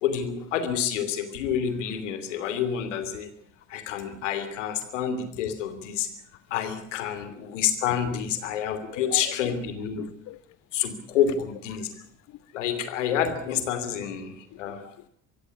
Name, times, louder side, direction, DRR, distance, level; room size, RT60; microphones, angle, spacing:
voice 1, 0.0-3.3 3.7-6.1 6.5-10.0 10.7-11.9 12.5-14.8, left 8 dB, 65° left, 10 dB, 2.9 m, -28 dB
voice 2, 8.9-9.5 10.0-10.4 11.7-12.1 14.8-15.1, left 15 dB, 45° left, 14 dB, 0.9 m, -40 dB
24.0 x 15.5 x 8.5 m, 0.72 s
figure-of-eight pair, 60°, 39 cm